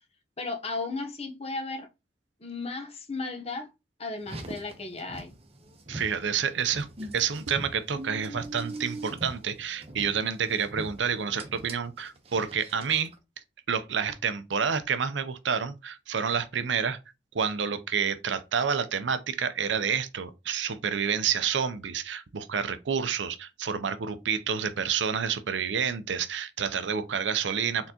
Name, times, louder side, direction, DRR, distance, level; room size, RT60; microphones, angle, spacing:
voice 1, 0.4-1.9 2.4-3.7 4.0-5.3, left 3 dB, 35° left, 0.9 m, -35 dB
Car, 4.2-13.2, right 1 dB, 35° right, 0.8 m, -42 dB
voice 2, 5.9-6.9 7.1-13.1 13.7-17.0 17.3-27.9, right 7 dB, 85° right, 0.6 m, -29 dB
4.3 x 3.8 x 2.8 m
head